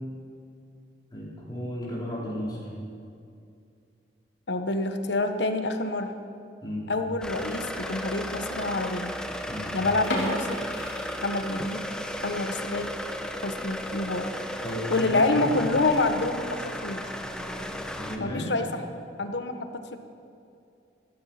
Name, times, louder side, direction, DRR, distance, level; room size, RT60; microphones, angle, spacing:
voice 1, 1.1-2.6 6.6-6.9 9.5-9.7 14.6-15.8 18.0-18.5, equal, 25° left, -7 dB, 4.6 m, -33 dB
voice 2, 4.5-6.1 6.9-9.1 9.7-10.7 11.2-11.8 12.2-12.9 13.4-14.2 14.9-17.0 18.2-18.6 19.2-20.0, left 2 dB, 70° left, 7 dB, 1.2 m, -27 dB
sound 1, 7.2-18.2, equal, 5° left, 0.9 m, -35 dB
sound 2, 10.0-11.9 12.2-12.3 12.8-13.0 13.4-13.5 13.8-13.9 14.6-15.0, left 1 dB, 90° left, 3.4 m, -34 dB
15.0 x 14.5 x 5.8 m, 2.5 s
head